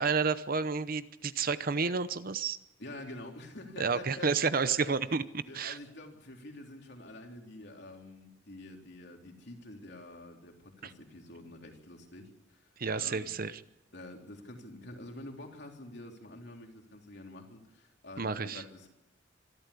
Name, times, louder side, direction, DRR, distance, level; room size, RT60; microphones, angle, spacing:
voice 1, 0.0-2.6 3.8-5.2 5.5-5.8 12.8-13.6 18.2-18.6, right 5 dB, 50° right, 13 dB, 0.8 m, -30 dB
voice 2, 2.8-4.9 5.5-13.3 13.9-18.9, left 1 dB, 60° left, 2 dB, 3.6 m, -47 dB
25.0 x 13.0 x 8.5 m, 0.91 s
head